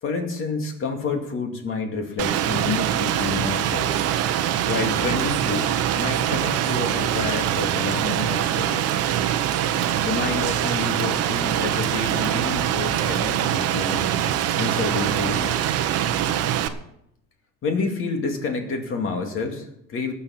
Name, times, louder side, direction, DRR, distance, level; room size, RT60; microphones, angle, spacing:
voice 1, 0.0-3.9 4.7-9.0 10.0-15.6 17.6-20.1, left 4 dB, 35° left, 4 dB, 2.4 m, -29 dB
Rain, 2.2-16.7, right 10 dB, 40° right, 0.9 m, -23 dB
19.0 x 7.4 x 6.0 m, 0.77 s
cardioid pair, 160°, 36 cm